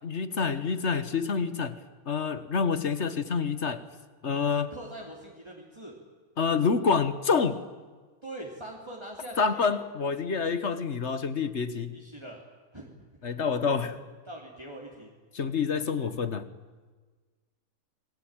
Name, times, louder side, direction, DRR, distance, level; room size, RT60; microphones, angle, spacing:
voice 1, 0.0-1.8 2.1-3.8 4.2-4.7 6.4-7.6 9.4-12.0 13.2-14.0 15.3-16.4, left 5 dB, 50° left, 12 dB, 1.5 m, -27 dB
voice 2, 4.7-5.9 8.2-9.8 11.9-12.4 12.7-12.9 13.8-15.1, right 1 dB, 20° right, -2 dB, 3.1 m, -43 dB
28.0 x 20.5 x 9.0 m, 1.4 s
omnidirectional pair, 1.5 m